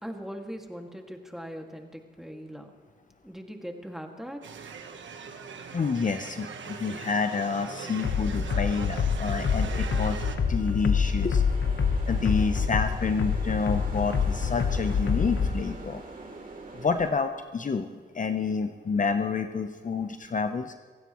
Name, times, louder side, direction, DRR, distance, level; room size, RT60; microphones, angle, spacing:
voice 1, 0.0-2.7 3.2-4.4, equal, ahead, 2 dB, 2.1 m, -40 dB
sound 1, 4.4-10.4, right 6 dB, 85° right, 1.2 m, -40 dB
voice 2, 5.7-10.2 10.5-11.4 12.1-16.0 16.7-17.9 18.1-20.7, left 5 dB, 45° left, 7 dB, 0.8 m, -29 dB
sound 2, 7.9-17.1, right 3 dB, 45° right, 3.1 m, -45 dB
sound 3, 8.0-15.5, left 6 dB, 80° left, 1.0 m, -26 dB
27.0 x 16.5 x 3.1 m, 1.5 s
cardioid pair, 80°, 19 cm